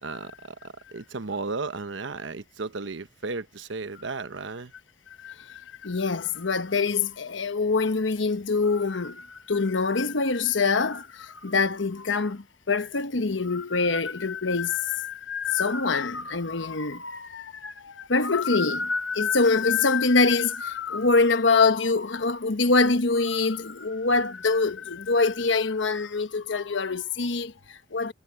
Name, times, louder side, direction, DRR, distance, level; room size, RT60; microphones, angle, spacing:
voice 1, 0.0-4.7, right 3 dB, 70° right, 0.9 m, -34 dB
voice 2, 5.2-28.1, left 4 dB, 70° left, 1.1 m, -25 dB
head